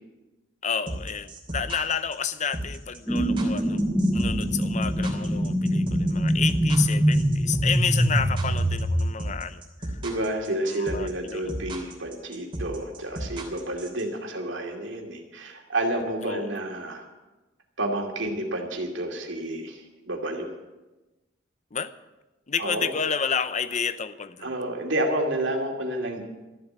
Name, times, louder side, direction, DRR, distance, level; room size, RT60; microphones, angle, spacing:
voice 1, 0.6-3.8 4.1-10.0 10.7-11.5 16.2-16.5 21.7-21.9 22.5-24.5, left 7 dB, 40° left, 13 dB, 0.6 m, -30 dB
sound 1, 0.9-14.0, right 1 dB, 25° right, 3.1 m, -34 dB
sound 2, 3.1-9.0, equal, ahead, 1.1 m, -23 dB
voice 2, 10.0-17.0 17.8-20.5 22.6-22.9 24.4-26.2, right 1 dB, 70° right, 2 dB, 2.5 m, -30 dB
14.0 x 7.7 x 9.5 m, 1.1 s
head